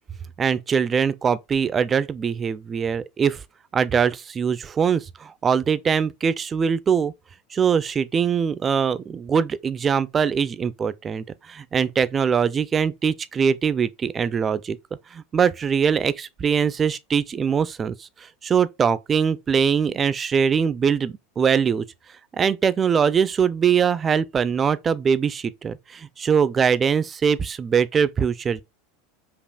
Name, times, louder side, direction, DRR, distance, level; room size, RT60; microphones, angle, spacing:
voice 1, 0.4-3.4 3.7-7.1 7.5-14.8 15.1-21.8 22.3-28.6, right 7 dB, 25° right, 0.4 m, -22 dB
5.3 x 2.4 x 2.3 m
hypercardioid pair, 100°, 0 cm